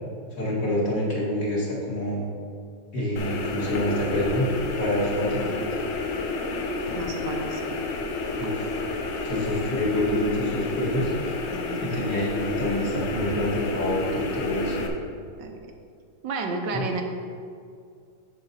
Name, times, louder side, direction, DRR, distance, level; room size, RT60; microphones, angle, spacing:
voice 1, 0.4-2.2 2.9-4.5 4.7-5.5 8.4-8.7 9.2-11.4 11.8-14.8, left 1 dB, 50° left, -6 dB, 2.3 m, -27 dB
sound 1, 3.2-14.9, left 3 dB, 85° left, 1.6 m, -30 dB
voice 2, 6.9-7.6 11.5-12.0 15.4-15.7 16.2-17.0, right 3 dB, 80° right, 3 dB, 1.5 m, -31 dB
7.6 x 7.0 x 4.0 m, 2.2 s
omnidirectional pair, 1.9 m